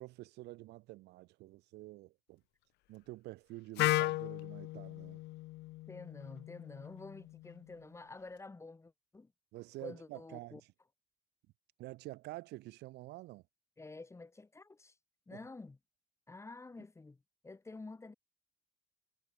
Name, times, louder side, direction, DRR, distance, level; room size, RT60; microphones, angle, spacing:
voice 1, 0.0-2.4 2.9-5.2 9.5-10.6 11.8-13.4 15.3-15.4, right 19 dB, 85° right, 1.3 m, -48 dB
Wind instrument woodwind instrument, 3.8-7.7, left 19 dB, 85° left, 1.2 m, -36 dB
voice 2, 5.9-9.3 9.8-10.6 13.8-14.9 15.3-15.8 16.3-18.1, left 3 dB, 15° left, 1.4 m, -49 dB
cardioid pair, 110°, 17 cm